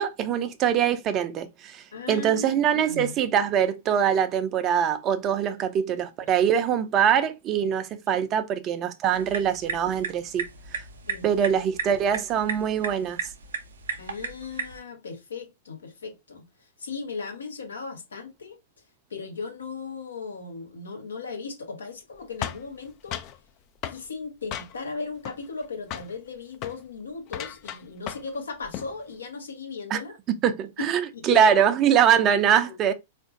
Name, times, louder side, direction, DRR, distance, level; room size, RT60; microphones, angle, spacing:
voice 1, 0.0-10.4 11.2-13.2 29.9-30.0 30.3-32.9, right 8 dB, 35° right, 0.5 m, -23 dB
voice 2, 1.9-3.2 5.6-6.1 8.1-8.2 11.1-11.5 14.0-18.6 19.1-23.2 23.9-30.2 30.8-31.5 32.0-32.1 32.7-32.8, left 4 dB, 80° left, 1.0 m, -37 dB
sound 1, 9.1-14.8, right 5 dB, 80° right, 0.6 m, -35 dB
sound 2, 22.4-23.4 23.8-24.0 24.5-25.0 25.2-25.7 25.9-26.2 26.5-26.8 27.3-28.4 28.6-28.9, left 10 dB, 40° left, 0.4 m, -35 dB
3.6 x 2.5 x 2.4 m
hypercardioid pair, 105°, 0 cm